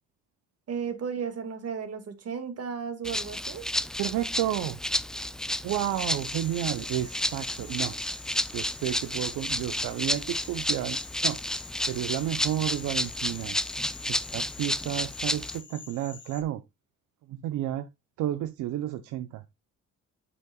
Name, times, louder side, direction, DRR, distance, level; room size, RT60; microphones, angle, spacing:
voice 1, 0.7-3.7, right 6 dB, 55° right, 2.0 m, -34 dB
Rattle (instrument), 3.0-15.6, left 1 dB, ahead, 0.4 m, -31 dB
voice 2, 4.0-4.8 5.6-8.0 8.5-11.4 11.9-13.6 14.1-16.6 17.3-17.9 18.2-19.4, right 13 dB, 85° right, 0.6 m, -31 dB
sound 1, 5.7-16.4, left 6 dB, 40° left, 1.2 m, -47 dB
8.5 x 6.9 x 2.3 m
cardioid pair, 90°, 30 cm